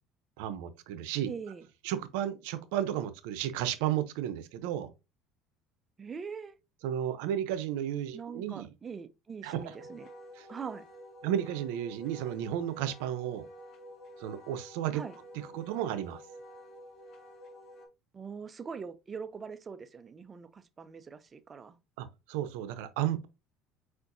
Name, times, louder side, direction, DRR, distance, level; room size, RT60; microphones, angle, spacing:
voice 1, 0.4-1.3 1.8-4.9 6.8-8.7 9.4-9.7 10.4-10.5 11.2-13.5 14.2-15.0 15.3-16.2 22.0-23.3, right 11 dB, 85° right, 0.6 m, -33 dB
voice 2, 1.2-1.7 6.0-6.5 8.1-10.1 10.5-10.8 14.9-15.1 18.1-21.8, right 6 dB, 25° right, 0.5 m, -42 dB
Wind instrument woodwind instrument, 9.6-17.9, equal, 45° left, 1.6 m, -50 dB
4.5 x 4.4 x 2.6 m
cardioid pair, 120°, 0 cm